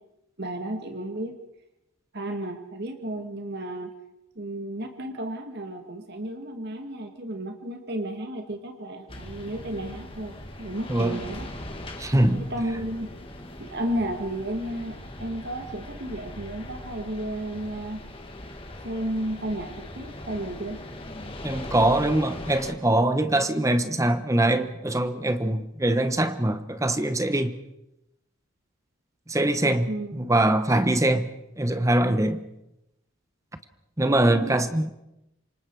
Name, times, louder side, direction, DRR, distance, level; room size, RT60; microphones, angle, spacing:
voice 1, 0.4-1.3 2.1-3.9 4.4-11.5 12.3-13.1 13.6-18.0 18.8-20.8 29.9-30.2 34.3-34.6, right 1 dB, 55° right, 2.1 m, -33 dB
sound 1, 9.1-22.7, left 1 dB, 25° left, 2.6 m, -40 dB
voice 2, 10.9-11.2 12.0-12.4 21.4-27.6 29.3-31.3 31.6-32.4 34.0-34.9, right 1 dB, 15° right, 1.0 m, -23 dB
27.5 x 25.0 x 4.9 m
head